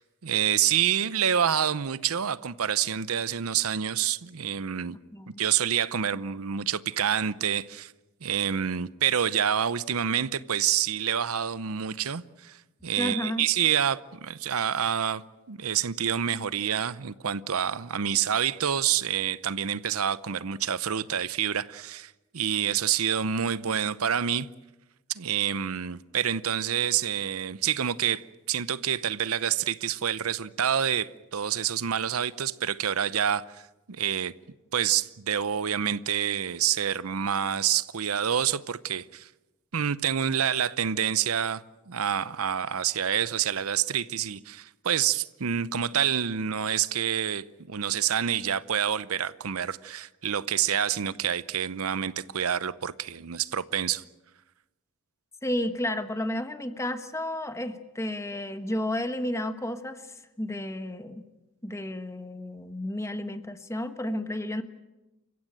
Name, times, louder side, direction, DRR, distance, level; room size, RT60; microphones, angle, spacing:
voice 1, 0.0-5.0 5.4-7.9 8.2-12.6 12.8-15.2 15.5-24.5 25.1-33.6 33.9-34.3 34.7-39.3 39.7-54.0, right 9 dB, 85° right, 0.7 m, -27 dB
voice 2, 13.0-13.5 55.4-60.0 60.4-61.3 61.6-64.6, left 1 dB, 15° left, 1.3 m, -32 dB
28.5 x 15.5 x 9.0 m
head